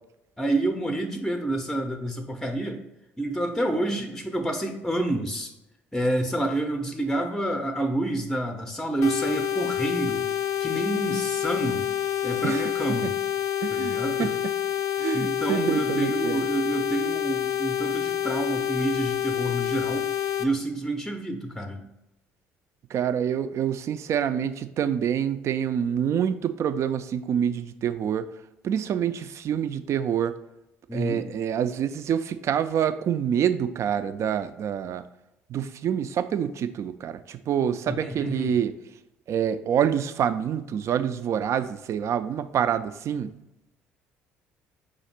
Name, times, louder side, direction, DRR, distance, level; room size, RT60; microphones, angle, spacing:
voice 1, 0.4-2.8 3.2-5.5 5.9-11.9 12.2-13.2 13.7-14.3 15.1-20.1 20.4-21.8 30.9-31.2 37.9-38.6, right 1 dB, 5° left, 5 dB, 0.5 m, -28 dB
sound 1, 9.0-20.4, left 10 dB, 60° left, 0.4 m, -28 dB
voice 2, 13.6-14.3 15.0-16.4 22.9-28.3 28.6-30.4 30.9-35.0 35.5-38.7 39.3-43.3, right 8 dB, 50° right, 11 dB, 0.3 m, -26 dB
5.0 x 2.5 x 4.2 m, 0.91 s
hypercardioid pair, 55°, 6 cm